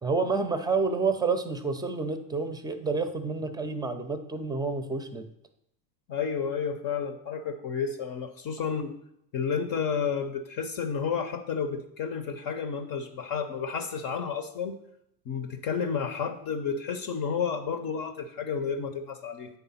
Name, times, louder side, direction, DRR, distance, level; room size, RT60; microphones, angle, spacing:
voice 1, 0.0-5.2, right 4 dB, 10° right, 9 dB, 0.6 m, -29 dB
voice 2, 6.1-8.9 9.3-14.8 15.3-19.5, left 6 dB, 45° left, 7 dB, 0.8 m, -31 dB
8.1 x 3.6 x 5.7 m, 0.77 s
hypercardioid pair, 80°, 50 cm